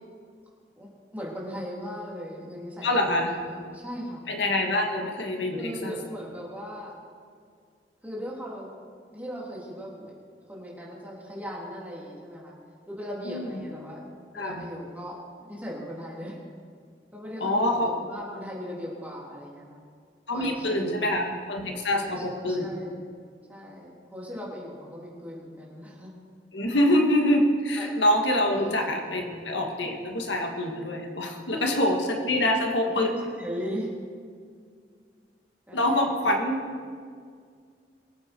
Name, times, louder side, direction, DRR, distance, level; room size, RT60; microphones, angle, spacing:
voice 1, 0.8-4.2 5.5-6.9 8.0-8.7 9.1-10.1 10.5-12.5 12.9-14.0 14.3-15.2 15.5-16.4 17.1-19.8 20.3-21.1 21.9-23.0 23.5-26.1 27.7-27.9 28.5-29.6 31.5-31.9 32.8-34.0 35.7-36.1, equal, 10° right, -5 dB, 3.3 m, -38 dB
voice 2, 2.8-3.3 4.3-5.9 13.3-13.5 14.3-14.6 17.4-18.0 20.3-22.7 26.5-33.1 35.7-36.6, left 1 dB, 85° left, 2 dB, 1.9 m, -25 dB
23.5 x 8.3 x 4.6 m, 2.1 s
head